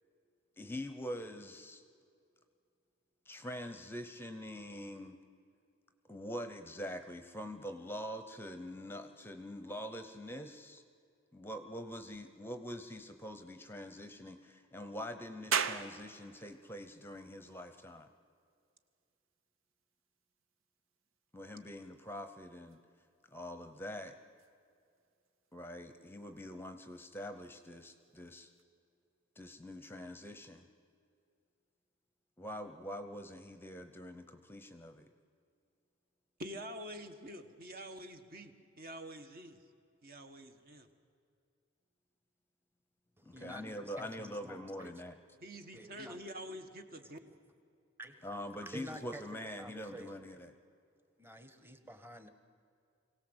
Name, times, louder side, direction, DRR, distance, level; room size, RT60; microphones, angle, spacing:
voice 1, 0.6-1.8 3.3-5.2 6.1-10.8 11.3-18.1 21.3-22.8 23.3-24.2 25.5-28.5 29.4-30.7 32.4-35.1 43.2-45.2 48.2-50.5, equal, 10° left, 9 dB, 0.8 m, -44 dB
sound 1, 15.5-28.6, right 6 dB, 80° right, 0.9 m, -45 dB
voice 2, 36.4-39.6 40.0-40.9 45.4-47.2, equal, 45° right, 7 dB, 1.4 m, -47 dB
voice 3, 43.2-44.9 45.7-46.3 48.0-48.3 48.6-50.4 51.2-52.3, right 1 dB, 10° right, 9 dB, 1.2 m, -50 dB
24.5 x 17.5 x 8.0 m, 2.4 s
head